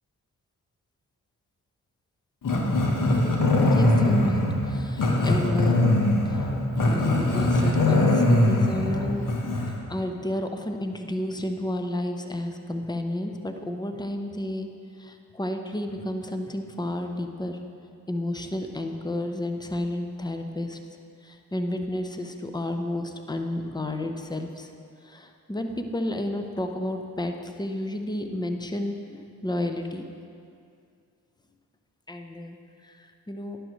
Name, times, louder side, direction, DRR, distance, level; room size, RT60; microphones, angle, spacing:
Growling, 2.4-9.8, left 1 dB, 55° left, 1.3 m, -22 dB
voice 1, 3.6-6.1 6.8-9.3 9.9-14.7 15.0-17.6 18.1-20.8 21.2-24.7 25.1-30.0 32.1-32.6 32.9-33.0 33.3-33.6, left 1 dB, 10° left, 5 dB, 0.7 m, -31 dB
10.5 x 6.3 x 3.1 m, 2.3 s
supercardioid pair, 45°, 39 cm